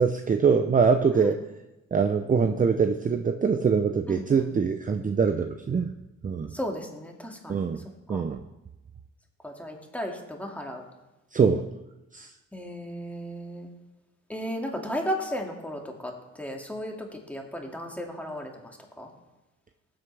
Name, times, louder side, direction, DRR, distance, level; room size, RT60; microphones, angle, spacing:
voice 1, 0.0-1.4 1.9-5.9 6.2-6.5 7.5-7.8 8.1-8.4 11.3-11.7 12.1-12.3, right 5 dB, 25° right, 7 dB, 0.6 m, -23 dB
voice 2, 4.1-4.5 6.5-7.6 8.1-8.2 9.4-10.8 12.5-13.7 14.3-16.1 16.4-18.7 19.0-19.1, equal, 5° left, 1 dB, 2.2 m, -35 dB
20.0 x 7.8 x 3.3 m, 1.0 s
cardioid pair, 90°, 30 cm